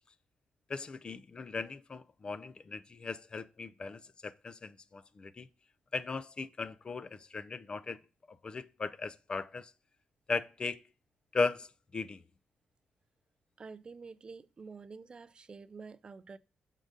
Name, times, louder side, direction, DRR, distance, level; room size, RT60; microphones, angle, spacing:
voice 1, 0.7-5.5 5.9-8.0 8.3-9.7 10.3-10.8 11.3-12.2, left 4 dB, 30° left, 0.4 m, -37 dB
voice 2, 13.6-16.4, right 4 dB, 35° right, 0.4 m, -48 dB
6.4 x 3.7 x 5.1 m
cardioid pair, 100°, 3 cm